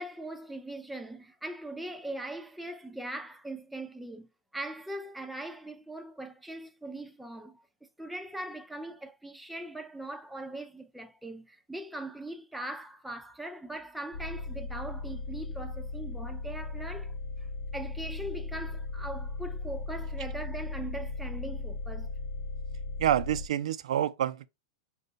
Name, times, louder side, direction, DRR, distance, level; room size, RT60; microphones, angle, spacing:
voice 1, 0.0-7.6 8.0-22.1, right 1 dB, ahead, 0.3 m, -40 dB
sound 1, 14.1-23.5, left 3 dB, 80° left, 0.5 m, -37 dB
voice 2, 23.0-24.5, right 11 dB, 85° right, 0.4 m, -27 dB
5.1 x 2.1 x 3.9 m
supercardioid pair, 155°, 3 cm